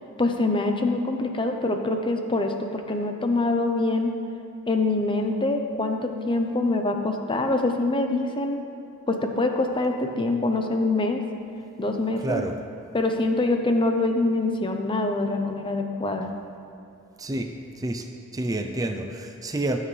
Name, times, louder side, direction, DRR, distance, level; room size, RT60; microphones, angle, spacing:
voice 1, 0.2-4.2 4.7-8.6 9.1-11.2 11.8-12.4 12.9-16.3, left 2 dB, 20° left, 4 dB, 0.8 m, -25 dB
voice 2, 12.2-12.6 17.2-18.1 18.3-19.8, right 1 dB, 15° right, 5 dB, 0.5 m, -29 dB
20.5 x 7.5 x 3.3 m, 2.7 s
head